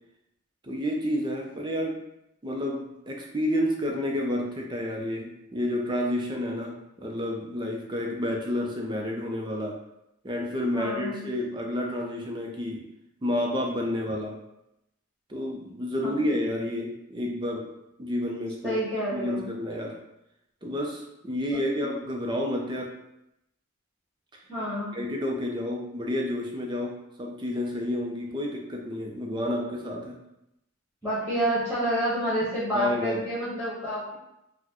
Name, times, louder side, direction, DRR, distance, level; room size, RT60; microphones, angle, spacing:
voice 1, 0.6-2.0 2.4-9.8 10.2-12.8 13.2-14.4 15.3-17.7 18.0-18.8 19.1-20.0 20.6-23.0 24.9-30.2 32.7-33.2, left 1 dB, 20° right, 0 dB, 0.5 m, -30 dB
voice 2, 10.7-11.3 16.0-16.3 18.6-19.5 21.5-21.8 24.5-25.0 31.0-34.1, equal, 5° left, -11 dB, 1.3 m, -29 dB
4.1 x 2.1 x 2.9 m, 0.85 s
head